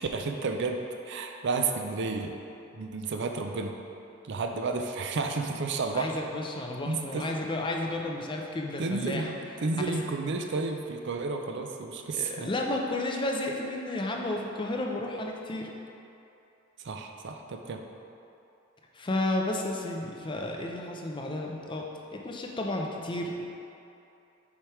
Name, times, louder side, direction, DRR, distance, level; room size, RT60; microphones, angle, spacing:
voice 1, 0.0-2.4 2.7-3.7 4.2-6.1 6.9-7.3 8.8-9.3 9.6-12.5 16.8-17.8, right 3 dB, 60° right, 4 dB, 0.5 m, -31 dB
voice 2, 5.9-9.3 9.7-10.0 12.1-15.7 18.9-23.4, left 2 dB, 25° left, 0 dB, 0.6 m, -32 dB
7.2 x 3.4 x 4.7 m, 2.8 s
head